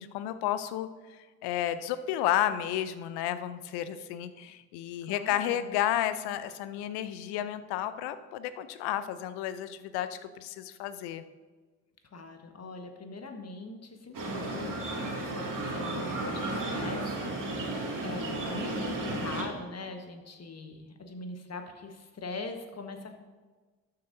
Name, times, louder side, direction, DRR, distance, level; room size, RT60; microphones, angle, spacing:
voice 1, 0.0-11.2, left 11 dB, 70° left, 13 dB, 0.6 m, -32 dB
voice 2, 5.0-5.7 12.1-23.1, left 3 dB, 40° left, 5 dB, 1.4 m, -42 dB
sound 1, 14.1-19.4, right 2 dB, 50° right, 2.3 m, -33 dB
13.0 x 6.8 x 2.7 m, 1.3 s
hypercardioid pair, 45°, 40 cm